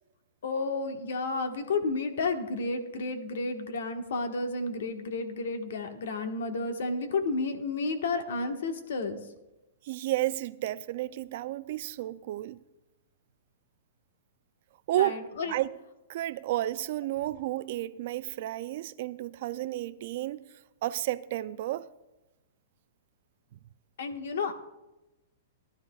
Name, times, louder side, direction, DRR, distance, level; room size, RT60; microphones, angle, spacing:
voice 1, 0.4-9.2 15.0-15.5 24.0-24.5, left 3 dB, 75° left, 1.4 m, -31 dB
voice 2, 9.9-12.6 14.9-15.2 15.5-15.7 16.1-20.4 20.8-21.9, right 15 dB, 50° right, 0.4 m, -32 dB
19.0 x 11.5 x 2.4 m
hypercardioid pair, 155°, 0 cm